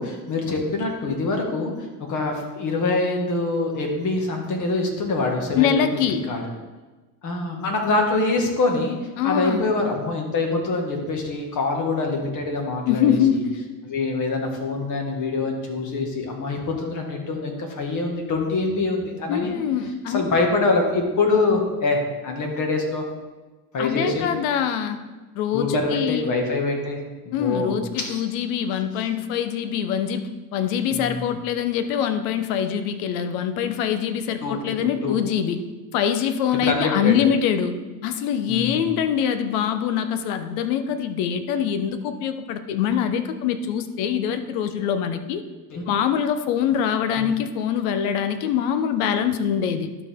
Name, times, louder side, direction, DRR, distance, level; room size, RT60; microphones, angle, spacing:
voice 1, 0.0-5.8 6.3-6.4 7.2-9.0 9.2-13.4 13.8-19.5 20.1-23.0 23.7-24.3 25.5-27.0 27.3-28.2 30.9-31.4 34.4-34.6 35.0-35.2 36.5-37.1 38.5-38.9 45.7-45.8 47.2-47.3, left 3 dB, 40° left, 1 dB, 1.9 m, -25 dB
voice 2, 5.6-6.2 9.2-9.7 12.9-13.5 19.3-20.3 23.8-25.0 25.3-26.3 27.3-35.6 35.9-37.7 38.0-45.4 45.9-50.0, left 8 dB, 70° left, 10 dB, 0.9 m, -24 dB
12.0 x 4.9 x 3.7 m, 1.2 s
supercardioid pair, 100°, 45 cm